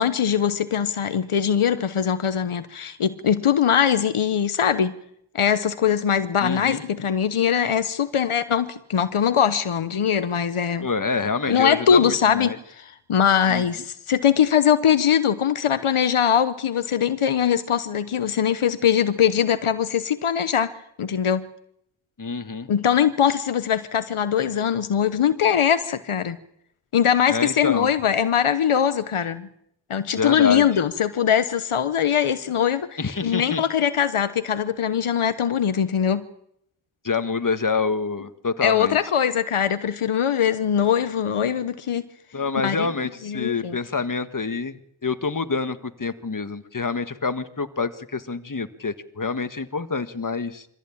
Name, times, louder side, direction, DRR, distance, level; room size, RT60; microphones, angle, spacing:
voice 1, 0.0-4.9 5.3-10.9 11.5-21.5 22.7-26.4 26.9-29.5 29.9-36.2 38.6-42.0 42.6-42.9 43.2-43.8, left 8 dB, 80° left, 12 dB, 1.1 m, -21 dB
voice 2, 6.4-6.8 10.8-12.6 13.5-13.6 22.2-22.7 27.3-27.9 30.1-30.7 33.0-33.6 37.0-39.0 42.3-50.7, left 4 dB, 40° left, 11 dB, 1.7 m, -27 dB
24.5 x 15.5 x 8.7 m, 0.75 s
cardioid pair, 40°, 50 cm